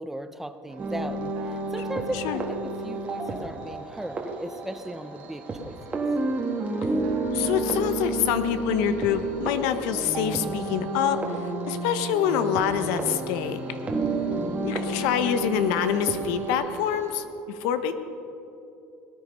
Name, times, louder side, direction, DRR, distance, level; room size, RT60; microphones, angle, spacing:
voice 1, 0.0-6.0 13.9-14.4, right 1 dB, 5° right, 10 dB, 0.6 m, -37 dB
sound 1, 0.7-17.3, right 3 dB, 80° right, 2.7 m, -49 dB
sound 2, 0.8-16.5, right 2 dB, 25° right, 1.7 m, -30 dB
voice 2, 7.3-11.4 11.7-13.8 14.6-17.2 17.6-18.0, left 8 dB, 80° left, 10 dB, 0.9 m, -26 dB
18.5 x 9.9 x 5.4 m, 2.9 s
cardioid pair, 125°, 6 cm